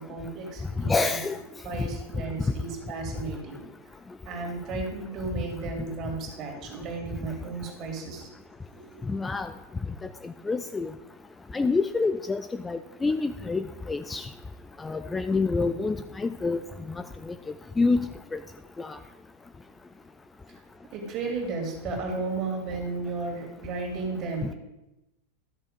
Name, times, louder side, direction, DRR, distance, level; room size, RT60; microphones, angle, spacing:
voice 1, 0.0-1.2 1.6-3.6 4.2-8.3 8.7-9.0 20.9-24.5, right 3 dB, 35° right, 1 dB, 2.9 m, -34 dB
voice 2, 0.8-1.4 9.1-9.5 10.2-10.9 11.5-14.3 14.8-16.6 17.3-17.4 17.8-18.1 18.3-18.4 18.8-19.0, left 3 dB, 15° left, 10 dB, 0.4 m, -27 dB
12.5 x 6.6 x 5.2 m, 0.95 s
figure-of-eight pair, 90°, 0 cm